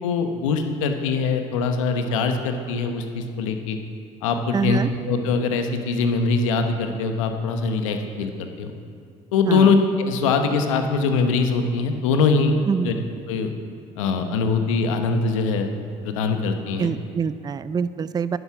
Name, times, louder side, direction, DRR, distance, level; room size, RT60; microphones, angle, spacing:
voice 1, 0.0-3.8 4.2-4.8 5.1-8.7 9.3-12.5 12.8-12.9 13.3-13.5 14.0-15.7 16.0-16.9, left 4 dB, 90° left, 6 dB, 1.0 m, -22 dB
voice 2, 4.5-4.9 9.5-9.7 12.7-12.9 16.8-18.4, right 6 dB, 25° right, 15 dB, 0.4 m, -25 dB
11.0 x 9.7 x 6.0 m, 2.2 s
hypercardioid pair, 70°, 16 cm